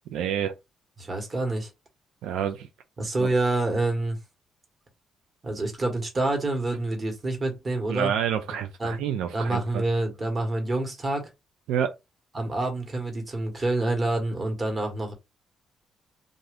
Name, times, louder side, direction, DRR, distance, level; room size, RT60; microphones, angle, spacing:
voice 1, 0.1-0.5 2.2-2.7 3.2-3.3 7.9-9.8 11.7-11.9, right 9 dB, 90° right, 0.4 m, -28 dB
voice 2, 1.0-1.7 3.0-4.2 5.4-8.1 8.8-9.0 9.3-11.3 12.3-15.1, right 2 dB, 30° right, 1.3 m, -27 dB
2.6 x 2.5 x 3.3 m
cardioid pair, 90°, 0 cm